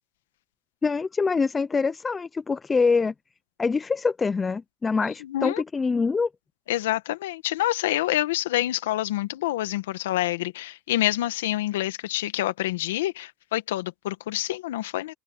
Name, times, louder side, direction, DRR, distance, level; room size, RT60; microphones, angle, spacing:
voice 1, 0.8-3.1 3.6-6.3, left 4 dB, 15° left, 0.3 m, -24 dB
voice 2, 5.2-5.6 6.7-15.1, left 15 dB, 85° left, 1.4 m, -27 dB
supercardioid pair, 155°, 0 cm